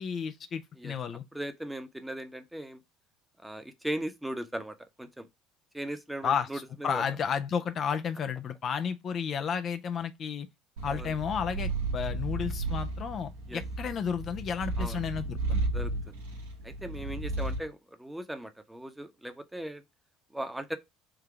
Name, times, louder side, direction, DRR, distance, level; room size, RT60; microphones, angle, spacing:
voice 1, 0.0-1.2 6.2-10.5 10.8-15.7, left 7 dB, 40° left, 0.4 m, -32 dB
voice 2, 1.3-2.8 3.4-5.3 5.7-7.0 10.9-11.2 13.5-13.6 14.8-15.0 15.7-16.2 16.6-19.8 20.3-20.8, right 1 dB, 5° right, 0.8 m, -38 dB
Purr, 10.8-17.7, right 2 dB, 75° right, 1.1 m, -33 dB
3.8 x 2.7 x 4.6 m
figure-of-eight pair, 60°, 0 cm